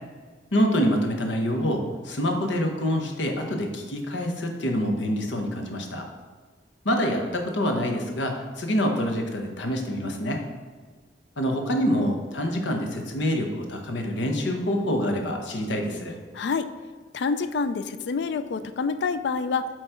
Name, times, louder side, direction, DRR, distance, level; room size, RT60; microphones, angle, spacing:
voice 1, 0.5-6.1 6.8-10.4 11.4-16.1, equal, 80° left, 3 dB, 1.0 m, -26 dB
voice 2, 16.3-16.7 17.1-19.7, left 5 dB, 65° left, 11 dB, 0.3 m, -27 dB
7.8 x 3.2 x 4.4 m, 1.5 s
head